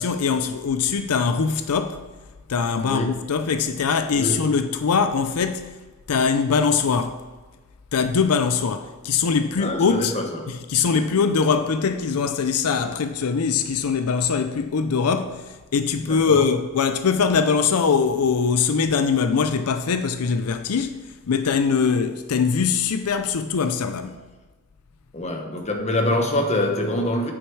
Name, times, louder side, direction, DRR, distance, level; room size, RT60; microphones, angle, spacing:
voice 1, 0.0-2.0 2.5-5.8 6.1-7.2 7.9-10.1 10.5-24.2, left 5 dB, 85° left, 0.5 m, -22 dB
voice 2, 2.8-3.1 4.2-4.4 9.6-10.5 16.0-16.4 25.1-27.3, left 1 dB, 30° left, 1.1 m, -25 dB
8.7 x 6.3 x 4.7 m
head